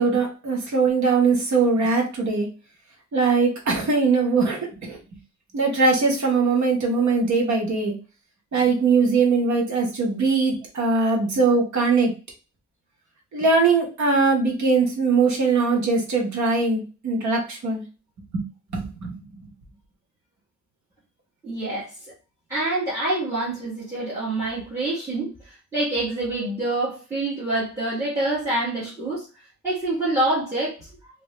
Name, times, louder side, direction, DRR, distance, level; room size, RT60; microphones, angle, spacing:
voice 1, 0.0-2.5 3.1-5.0 5.5-7.9 8.5-12.1 13.3-17.8 18.3-18.4 18.7-19.2, right 4 dB, 65° right, -2 dB, 1.3 m, -21 dB
voice 2, 21.4-21.9 22.5-29.3 29.6-30.9, right 2 dB, 10° right, -8 dB, 1.5 m, -26 dB
2.9 x 2.9 x 3.2 m, 0.32 s
wide cardioid pair, 120°, 30 cm